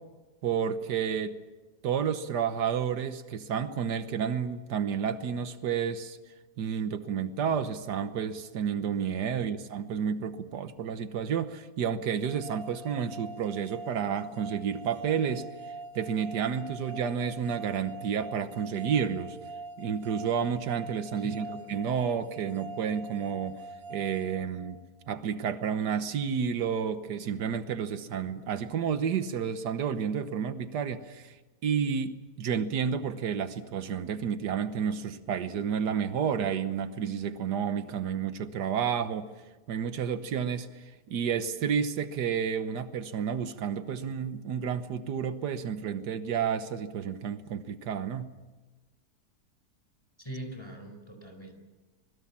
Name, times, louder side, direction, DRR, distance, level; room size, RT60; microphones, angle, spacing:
voice 1, 0.4-1.4 1.8-6.2 6.6-15.5 15.9-19.4 19.8-23.6 23.9-31.4 31.6-39.3 39.7-40.7 41.1-48.3, right 7 dB, 90° right, 11 dB, 1.7 m, -31 dB
sound 1, 12.2-25.2, right 3 dB, 60° right, 1.6 m, -44 dB
voice 2, 21.2-21.5 50.2-51.5, right 1 dB, 15° left, 4 dB, 4.7 m, -42 dB
26.5 x 21.0 x 7.4 m, 1.2 s
omnidirectional pair, 1.7 m